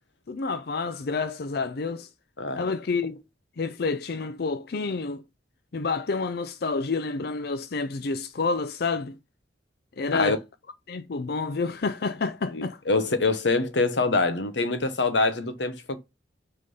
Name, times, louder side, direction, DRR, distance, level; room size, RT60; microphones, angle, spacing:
voice 1, 0.3-2.1 2.6-3.2 3.6-5.2 5.7-9.1 10.0-10.4 10.9-12.8, left 4 dB, 55° left, 0.5 m, -29 dB
voice 2, 12.5-16.0, left 3 dB, 75° left, 1.1 m, -25 dB
6.5 x 3.7 x 5.5 m
head